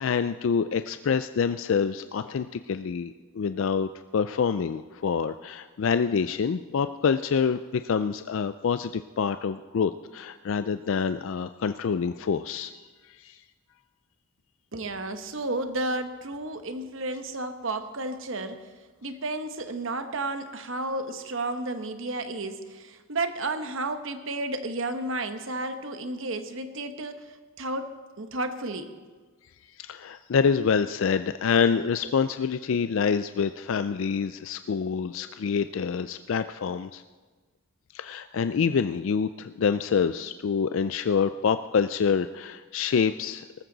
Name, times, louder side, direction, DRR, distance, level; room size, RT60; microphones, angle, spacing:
voice 1, 0.0-12.7 13.1-13.4 29.8-37.0 37.9-43.5, left 6 dB, 65° left, 11 dB, 0.4 m, -26 dB
voice 2, 14.7-18.7 19.0-27.9 28.2-28.9, right 2 dB, 65° right, 9 dB, 1.1 m, -32 dB
19.0 x 14.0 x 4.0 m, 1.4 s
head